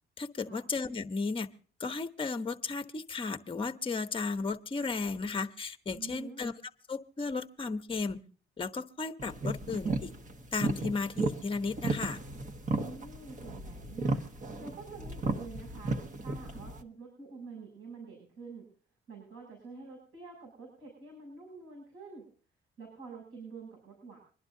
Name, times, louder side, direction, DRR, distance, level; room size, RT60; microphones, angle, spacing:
voice 1, 0.2-1.5 1.8-6.5 6.9-8.2 8.6-10.1 10.5-12.2, left 4 dB, 25° left, 7 dB, 1.0 m, -34 dB
voice 2, 5.9-6.4 12.7-14.2 14.6-18.7 19.1-22.3 22.8-24.2, right 4 dB, 85° right, -1 dB, 7.6 m, -47 dB
sound 1, 9.2-16.8, right 3 dB, 40° right, 1.3 m, -35 dB
25.5 x 11.5 x 2.7 m, 0.42 s
cardioid pair, 90°, 20 cm